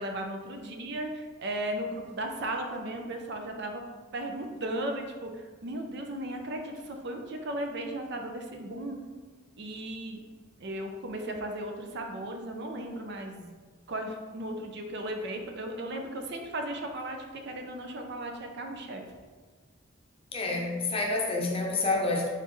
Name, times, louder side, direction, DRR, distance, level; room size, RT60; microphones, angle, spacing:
voice 1, 0.0-3.8 4.1-9.0 9.6-10.2 10.6-13.6 13.9-19.0, right 1 dB, 60° right, 3 dB, 0.5 m, -36 dB
voice 2, 20.3-22.3, left 3 dB, 30° left, -1 dB, 0.7 m, -28 dB
4.1 x 4.0 x 3.1 m, 1.4 s
head